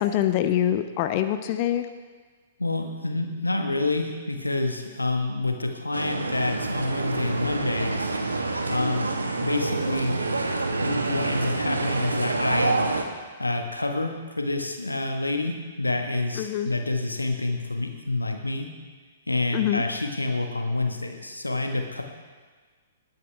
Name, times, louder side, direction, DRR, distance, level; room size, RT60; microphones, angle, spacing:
voice 1, 0.0-1.9 16.4-16.7 19.5-19.8, left 11 dB, 35° left, 8 dB, 0.7 m, -24 dB
voice 2, 2.6-8.1 8.7-9.1 9.4-10.2 10.8-12.8 13.4-18.7 19.3-22.0, left 2 dB, 85° left, 4 dB, 1.5 m, -28 dB
sound 1, 5.9-13.0, right 3 dB, 75° right, 1.3 m, -27 dB
20.0 x 9.4 x 3.5 m, 1.4 s
figure-of-eight pair, 115°, 0 cm